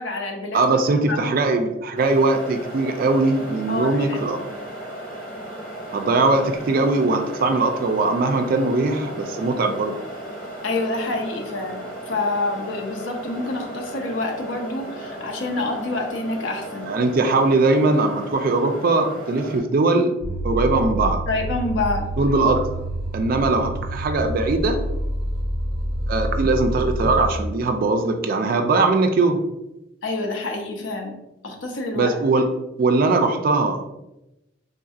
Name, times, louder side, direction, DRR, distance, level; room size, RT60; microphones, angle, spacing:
voice 1, 0.0-0.6 1.1-1.3 3.7-4.2 10.6-16.9 21.3-22.1 30.0-31.2 31.4-32.2, left 2 dB, 70° left, 3 dB, 0.6 m, -27 dB
voice 2, 0.5-4.4 5.9-10.0 16.9-20.1 20.4-21.2 22.2-22.7 23.1-24.8 26.1-29.4 31.9-32.5 32.8-33.9, right 3 dB, 50° right, 6 dB, 0.3 m, -20 dB
sound 1, 2.0-19.6, right 1 dB, 10° left, 1.4 m, -35 dB
sound 2, 20.2-27.3, equal, 25° left, 1.0 m, -27 dB
3.7 x 2.6 x 2.4 m, 0.92 s
head